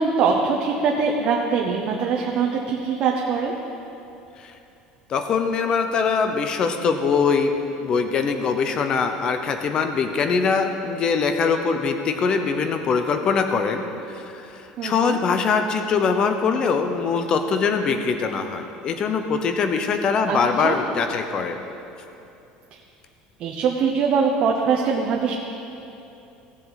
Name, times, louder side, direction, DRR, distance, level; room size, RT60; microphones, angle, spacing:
voice 1, 0.0-3.5 14.8-15.2 20.3-20.4 20.6-20.7 23.4-25.3, right 5 dB, 40° right, 0 dB, 0.8 m, -22 dB
voice 2, 5.1-7.5 7.8-21.6, left 5 dB, 30° left, 7 dB, 0.7 m, -22 dB
17.0 x 7.3 x 4.1 m, 2.8 s
cardioid pair, 170°, 3 cm